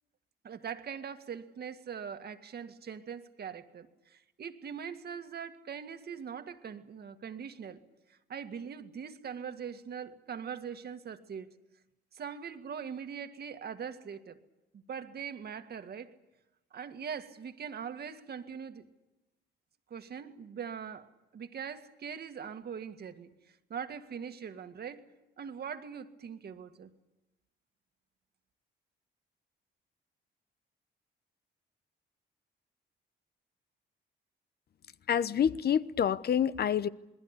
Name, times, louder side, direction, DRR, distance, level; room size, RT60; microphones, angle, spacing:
voice 1, 0.4-7.8 8.1-11.5 12.1-14.4 14.7-16.1 16.7-18.9 19.9-21.1 21.3-23.3 23.7-25.0 25.4-26.9, right 7 dB, 55° right, 8 dB, 2.0 m, -42 dB
voice 2, 35.1-36.9, left 8 dB, 55° left, 16 dB, 1.0 m, -27 dB
27.5 x 21.0 x 8.3 m, 0.99 s
cardioid pair, 90°, 20 cm